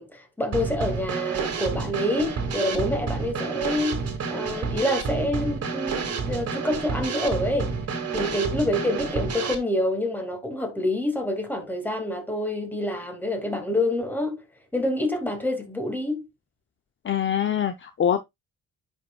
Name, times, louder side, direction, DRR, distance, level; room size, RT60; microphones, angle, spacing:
voice 1, 0.0-4.0 4.3-7.8 8.1-14.4 14.7-16.3, left 1 dB, 5° left, 2.2 m, -27 dB
Drum kit / Snare drum, 0.5-9.6, right 5 dB, 45° right, 2.1 m, -29 dB
voice 2, 17.0-18.2, left 9 dB, 35° left, 0.7 m, -24 dB
10.0 x 5.5 x 2.3 m
cardioid pair, 110°, 34 cm